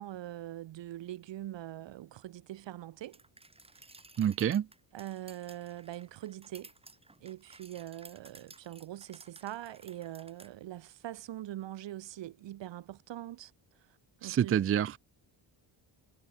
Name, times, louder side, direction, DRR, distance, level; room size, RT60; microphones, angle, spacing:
voice 1, 0.0-3.2 3.7-3.9 4.9-6.7 7.2-13.5 13.8-14.6, right 14 dB, 65° right, 2.1 m, -43 dB
sound 1, 3.1-10.5, right 2 dB, 10° right, 3.5 m, -56 dB
voice 2, 4.2-4.7 14.2-15.0, right 9 dB, 30° right, 0.5 m, -27 dB
cardioid pair, 155°, 47 cm